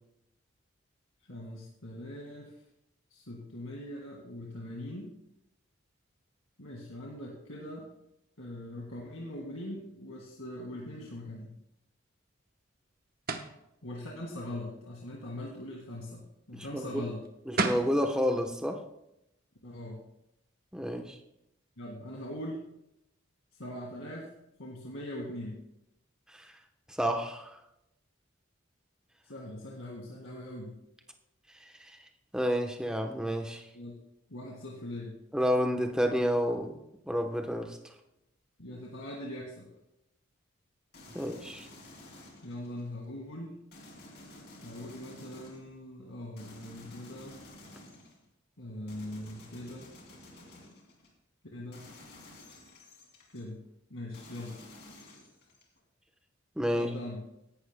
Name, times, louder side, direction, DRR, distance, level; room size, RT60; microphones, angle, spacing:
voice 1, 1.3-2.6 3.1-5.1 6.6-7.9 8.4-11.5 13.8-17.2 19.6-20.0 21.8-22.6 23.5-24.3 24.6-25.6 29.2-30.8 33.7-34.0 34.3-35.2 38.6-39.7 42.4-43.6 44.6-47.4 48.6-49.9 51.5-51.8 53.3-53.6 53.9-54.6 56.7-57.2, left 1 dB, 90° left, -2 dB, 2.0 m, -41 dB
sound 1, 13.3-13.6 17.2-17.3 17.6-17.9, right 3 dB, 45° right, 1.0 m, -30 dB
voice 2, 16.5-17.0 17.5-18.8 20.7-21.2 26.3-26.5 26.9-27.6 31.9-32.0 32.3-33.6 35.3-36.8 37.1-37.8 41.1-41.7 56.6-56.9, equal, 5° right, 4 dB, 0.9 m, -30 dB
sound 2, 40.9-42.9 43.7-45.8 46.4-48.3 48.9-51.1 51.7-53.4 54.1-55.8, left 1 dB, 50° left, 2.6 m, -52 dB
17.0 x 11.5 x 2.2 m, 0.84 s
head